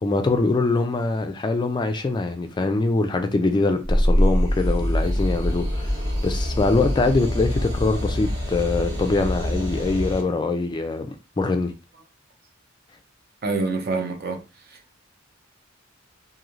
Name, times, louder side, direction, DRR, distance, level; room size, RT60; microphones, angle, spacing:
voice 1, 0.0-11.1 11.4-11.7, left 3 dB, 20° left, 0.3 m, -23 dB
sound 1, 3.8-10.2, equal, 25° right, 1.2 m, -24 dB
voice 2, 13.4-14.4, right 3 dB, 50° right, 0.7 m, -25 dB
3.1 x 2.6 x 2.5 m
head